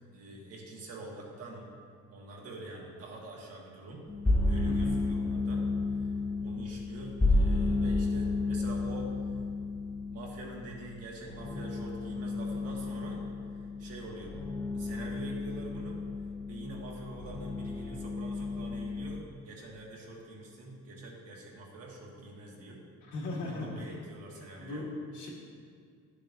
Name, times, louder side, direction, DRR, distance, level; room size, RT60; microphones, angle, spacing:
voice 1, 0.1-1.7 2.1-4.0 4.4-9.1 10.1-13.3 13.5-14.3 14.7-16.0 16.5-22.8 23.4-24.9, right 2 dB, 55° right, -2 dB, 1.5 m, -45 dB
sound 1, 4.1-19.2, left 2 dB, 10° left, 0.4 m, -32 dB
voice 2, 4.6-5.0 23.1-23.9 24.6-25.3, left 2 dB, 70° left, -3 dB, 1.9 m, -38 dB
12.0 x 6.7 x 2.6 m, 2.2 s
cardioid pair, 175°, 29 cm